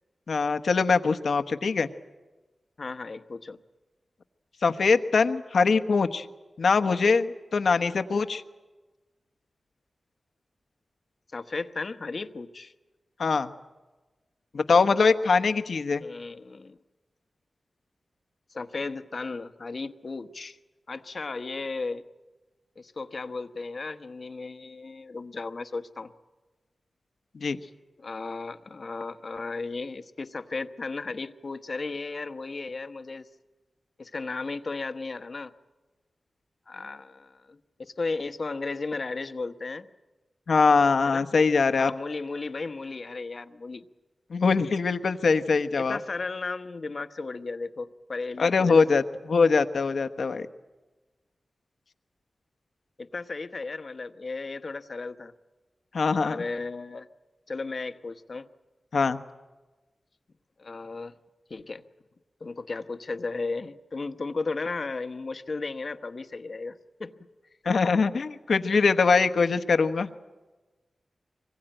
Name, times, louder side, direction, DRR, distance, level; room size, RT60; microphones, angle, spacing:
voice 1, 0.3-1.9 4.6-6.3 6.6-8.4 13.2-13.5 14.5-16.0 27.3-27.6 40.5-41.9 44.3-46.0 48.4-50.5 55.9-56.4 58.9-59.2 67.6-70.1, left 4 dB, 75° left, 9 dB, 1.1 m, -22 dB
voice 2, 2.8-3.6 11.3-12.7 16.0-16.8 18.5-20.6 20.9-22.0 22.8-26.1 27.6-27.7 28.0-33.3 34.0-35.5 36.7-39.9 41.0-41.2 41.8-43.8 45.8-48.8 53.0-55.3 56.2-57.1 57.5-58.5 60.6-61.1 61.5-61.8 62.4-67.1 68.7-69.2, left 3 dB, 55° left, 9 dB, 1.0 m, -35 dB
24.5 x 20.5 x 9.1 m, 1.2 s
wide cardioid pair, 70°, 0 cm